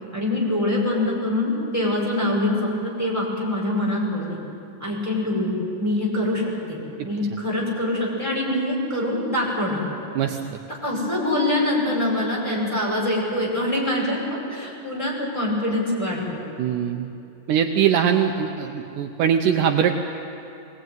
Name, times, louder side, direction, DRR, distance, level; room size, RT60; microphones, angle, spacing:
voice 1, 0.1-4.2 4.8-5.5 5.8-6.4 6.7-9.8 10.8-16.4, left 1 dB, 10° left, -4 dB, 5.5 m, -24 dB
voice 2, 16.6-17.1 17.5-19.9, right 8 dB, 75° right, 5 dB, 2.2 m, -21 dB
21.5 x 18.5 x 9.3 m, 2.7 s
omnidirectional pair, 3.9 m